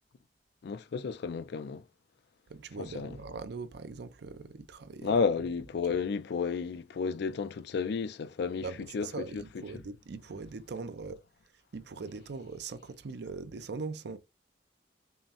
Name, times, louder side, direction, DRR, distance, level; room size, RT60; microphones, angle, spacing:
voice 1, 0.6-1.8 2.8-3.2 5.0-8.7 8.9-9.6, left 5 dB, 65° left, 0.4 m, -32 dB
voice 2, 2.5-5.1 8.6-11.2 11.7-14.2, right 4 dB, 65° right, 0.5 m, -41 dB
5.5 x 2.1 x 2.9 m
head